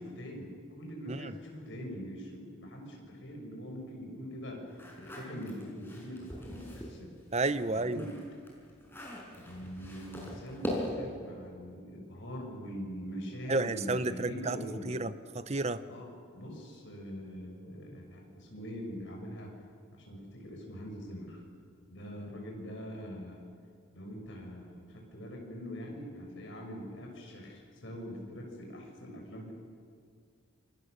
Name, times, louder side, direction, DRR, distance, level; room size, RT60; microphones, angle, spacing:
voice 1, 0.0-4.6 5.0-7.1 7.7-8.2 9.4-15.0 15.9-19.6 19.9-21.4 21.9-23.5 23.9-29.5, equal, 60° left, 0 dB, 6.5 m, -43 dB
sound 1, 4.7-7.0 7.4-11.2, left 1 dB, 10° left, 5.2 m, -41 dB
voice 2, 7.3-8.0 13.5-14.6 14.8-15.8, right 2 dB, 30° right, 13 dB, 0.8 m, -31 dB
28.0 x 24.5 x 6.7 m, 2.2 s
head